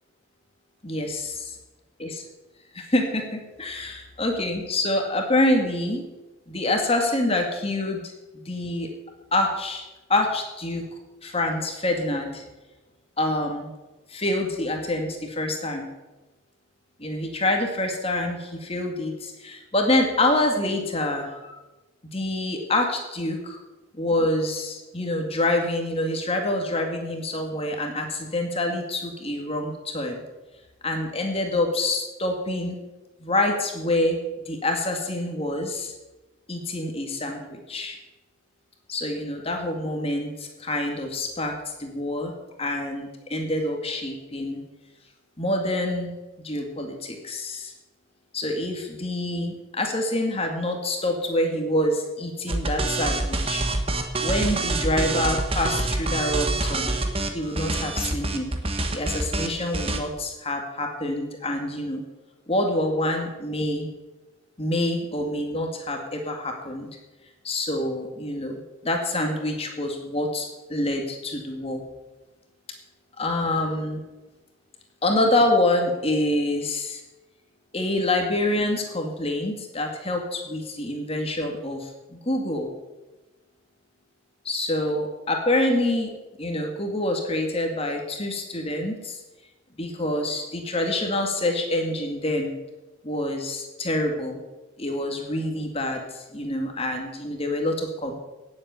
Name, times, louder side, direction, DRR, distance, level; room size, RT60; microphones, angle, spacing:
voice 1, 0.8-1.2 2.0-2.1 2.7-6.0 6.5-8.9 9.3-10.9 11.2-12.4 13.2-13.7 14.1-15.9 17.0-21.6 22.1-23.6 23.9-30.2 30.8-32.8 33.2-34.2 34.5-35.9 36.5-38.0 38.9-41.5 41.8-42.3 42.6-44.6 45.4-46.2 46.4-47.7 48.3-53.6 54.2-56.9 57.3-58.5 58.9-62.0 62.5-63.9 64.6-66.9 67.4-71.8 73.2-74.0 75.0-77.0 77.7-82.7 84.5-86.1 86.4-89.2 89.8-92.5 93.0-94.4 94.8-98.1, left 1 dB, 30° left, 3 dB, 2.1 m, -26 dB
sound 1, 52.5-60.0, right 2 dB, 25° right, 1.3 m, -26 dB
17.5 x 7.8 x 7.0 m, 1.1 s
head